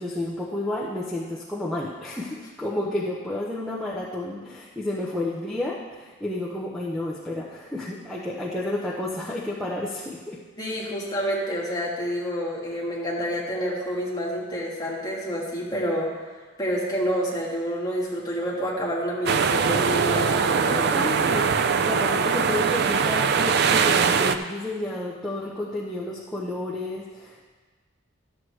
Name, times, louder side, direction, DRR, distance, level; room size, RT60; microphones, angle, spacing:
voice 1, 0.0-10.4 20.6-27.4, left 1 dB, ahead, -6 dB, 0.7 m, -31 dB
voice 2, 10.6-16.2 16.6-20.8, equal, 20° left, -5 dB, 1.8 m, -28 dB
sound 1, 19.3-24.4, right 6 dB, 50° right, 0.4 m, -22 dB
12.5 x 7.8 x 3.2 m, 1.4 s
head